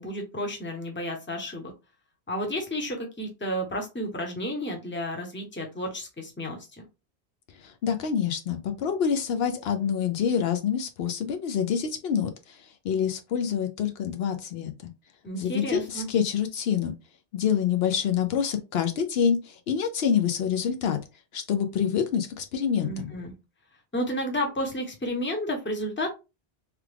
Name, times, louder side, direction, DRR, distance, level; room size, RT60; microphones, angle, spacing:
voice 1, 0.0-1.7 2.3-6.8 15.2-16.1 22.8-23.3 23.9-26.1, equal, 10° left, 0.7 m, -32 dB
voice 2, 7.6-14.9 15.3-16.9 17.3-21.0 21.3-23.1, left 8 dB, 75° left, 0.8 m, -27 dB
3.3 x 2.3 x 3.3 m
omnidirectional pair, 1.1 m